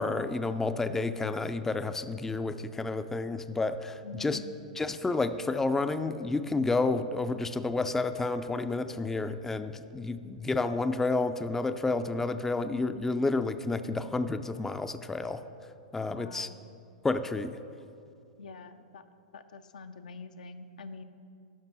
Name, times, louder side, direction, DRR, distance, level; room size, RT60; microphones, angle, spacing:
voice 1, 0.0-4.4 4.8-15.4 15.9-16.5 17.0-17.6, left 3 dB, 10° left, 10 dB, 0.4 m, -30 dB
voice 2, 4.0-4.5 16.1-16.6 18.4-19.0 19.3-21.0, left 4 dB, 75° left, 9 dB, 0.6 m, -45 dB
12.0 x 5.3 x 6.0 m, 2.5 s
hypercardioid pair, 110°, 4 cm